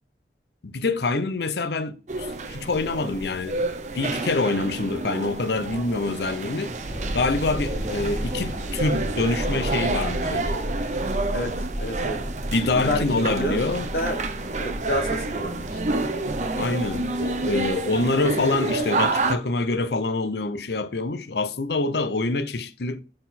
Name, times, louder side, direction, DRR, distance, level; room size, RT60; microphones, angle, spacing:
voice 1, 0.6-3.6 3.9-6.7 7.1-10.6 12.5-13.9 16.5-23.0, left 3 dB, 70° left, 0.7 m, -26 dB
sound 1, 2.1-19.4, right 3 dB, 40° right, 0.6 m, -29 dB
sound 2, 6.8-17.7, equal, 5° right, 3.0 m, -33 dB
voice 2, 11.8-12.3 12.9-13.6 13.9-14.2 14.6-15.8, left 1 dB, 55° left, 1.2 m, -28 dB
6.1 x 4.4 x 4.2 m
head